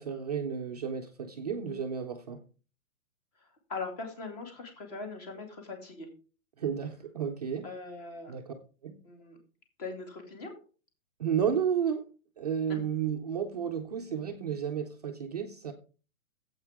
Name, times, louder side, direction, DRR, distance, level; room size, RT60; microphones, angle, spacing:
voice 1, 0.0-2.4 6.6-7.7 8.3-8.5 8.8-9.0 11.2-12.1 12.4-15.7, right 7 dB, 30° right, 2 dB, 0.6 m, -32 dB
voice 2, 3.4-6.1 7.6-8.3 9.0-9.4 9.8-10.5 12.7-12.8, left 3 dB, 30° left, 5 dB, 2.5 m, -41 dB
13.5 x 8.0 x 3.6 m, 0.36 s
hypercardioid pair, 175°, 41 cm